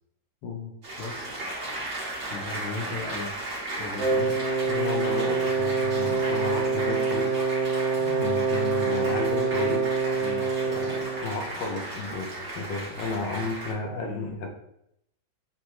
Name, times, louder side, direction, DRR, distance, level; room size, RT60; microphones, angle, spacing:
voice 1, 0.4-0.7 4.2-4.3 4.7-7.5 8.0-9.9 10.6-14.5, left 3 dB, 75° left, 3 dB, 1.4 m, -33 dB
Applause, 0.8-13.7, right 1 dB, 50° right, 1.4 m, -35 dB
voice 2, 1.0-1.3 2.3-3.3 3.8-4.2 10.2-10.5 14.0-14.4, left 3 dB, 60° left, 1 dB, 0.7 m, -36 dB
Wind instrument woodwind instrument, 4.0-11.3, right 4 dB, 75° right, 1.3 m, -26 dB
5.9 x 2.2 x 3.0 m, 0.76 s
omnidirectional pair, 2.0 m